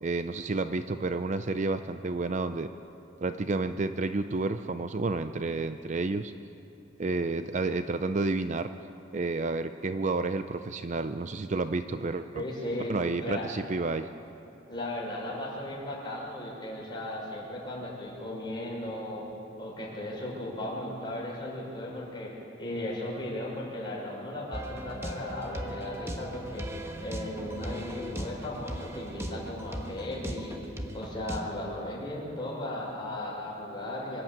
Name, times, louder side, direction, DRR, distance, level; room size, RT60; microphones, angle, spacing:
voice 1, 0.0-2.7 3.2-6.3 7.0-8.7 9.1-12.4 12.9-14.1, right 3 dB, 40° right, 10 dB, 0.5 m, -30 dB
voice 2, 12.3-12.9 13.2-13.4 14.7-19.2 19.6-22.3 22.6-26.7 27.0-30.6 30.9-34.2, left 1 dB, 25° left, -4 dB, 5.6 m, -36 dB
sound 1, 24.5-31.5, equal, 15° right, 1.2 m, -38 dB
25.5 x 12.0 x 8.8 m, 2.9 s
head